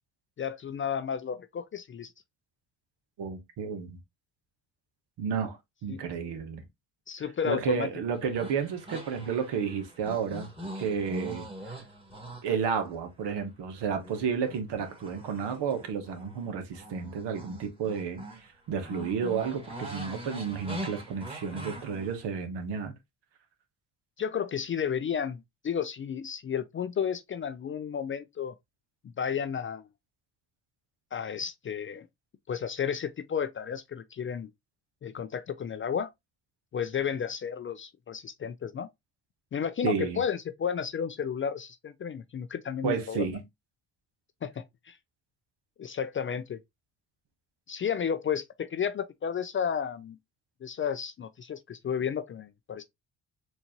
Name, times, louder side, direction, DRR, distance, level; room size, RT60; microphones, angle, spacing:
voice 1, 0.4-2.1 5.9-6.0 7.1-7.9 8.2-8.3 24.2-28.5 29.2-29.9 31.1-32.1 32.5-34.5 35.0-36.1 36.7-38.9 39.5-43.3 44.4-45.0 45.8-46.6 47.7-50.2 50.6-52.8, left 7 dB, 30° left, 0.4 m, -32 dB
voice 2, 3.2-4.0 5.2-6.6 7.4-10.5 10.7-11.7 12.4-18.2 18.7-22.9 39.8-40.2 42.8-43.4, right 6 dB, 70° right, 1.1 m, -32 dB
sound 1, 8.1-13.4 13.8-18.5 18.8-22.2, right 1 dB, 10° right, 1.7 m, -42 dB
4.4 x 2.6 x 2.8 m
hypercardioid pair, 55°, 44 cm